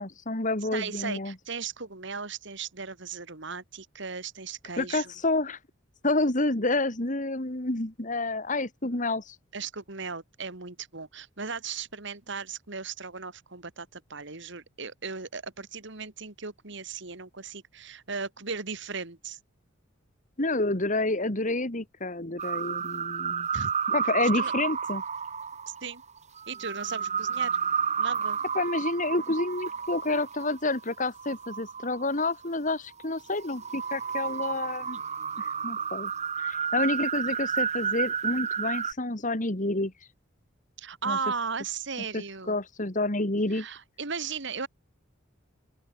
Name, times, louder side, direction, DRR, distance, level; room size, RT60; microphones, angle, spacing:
voice 1, 0.0-1.3 4.8-5.6 6.0-9.4 20.4-23.5 23.9-25.0 28.5-35.0 35.4-36.1 36.4-39.9 41.1-41.2 42.1-43.7, left 2 dB, 40° left, 2.3 m, -29 dB
voice 2, 0.7-5.1 9.5-19.4 23.5-23.7 24.3-24.5 25.7-26.0 26.5-27.6 28.0-28.4 40.8-42.6 43.5-44.7, right 5 dB, 60° right, 2.4 m, -36 dB
sound 1, 22.4-32.5 33.0-38.9, right 7 dB, 35° right, 1.7 m, -31 dB
open air
head